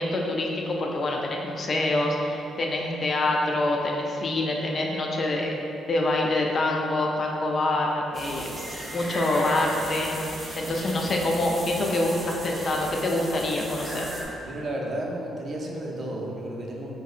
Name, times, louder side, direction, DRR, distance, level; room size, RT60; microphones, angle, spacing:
voice 1, 0.0-5.5 5.9-8.5 8.9-10.1 10.6-14.1, left 2 dB, 45° left, 0 dB, 0.4 m, -26 dB
sound 1, 8.1-14.2, right 1 dB, 20° right, 0.8 m, -37 dB
voice 2, 14.4-16.9, right 1 dB, 45° right, -1 dB, 0.5 m, -32 dB
3.9 x 2.7 x 2.4 m, 3.0 s
cardioid pair, 90°, 0 cm